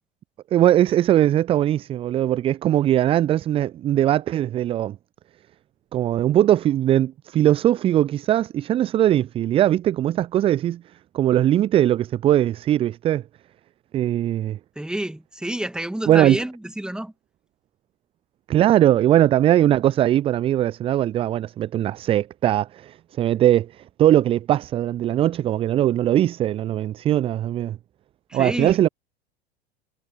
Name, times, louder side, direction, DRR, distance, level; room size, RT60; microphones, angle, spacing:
voice 1, 0.5-5.0 5.9-10.8 11.1-13.2 13.9-14.6 16.1-16.4 18.5-27.8 28.3-28.9, right 12 dB, 20° right, 0.5 m, -20 dB
voice 2, 14.8-17.1 28.3-28.8, right 1 dB, ahead, 2.2 m, -29 dB
figure-of-eight pair, 85°, 31 cm